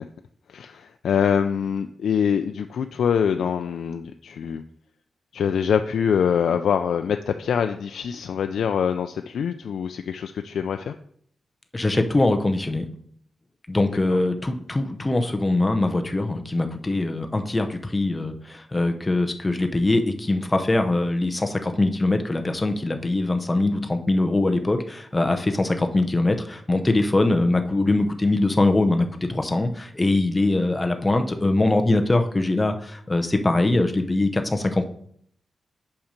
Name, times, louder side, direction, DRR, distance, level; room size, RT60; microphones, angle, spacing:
voice 1, 0.5-4.6 5.3-10.9 14.1-14.2, left 7 dB, 90° left, 7 dB, 0.3 m, -24 dB
voice 2, 11.7-12.9 13.7-34.9, left 2 dB, 15° left, 6 dB, 0.6 m, -22 dB
5.7 x 5.5 x 5.1 m, 0.65 s
wide cardioid pair, 175°, 0 cm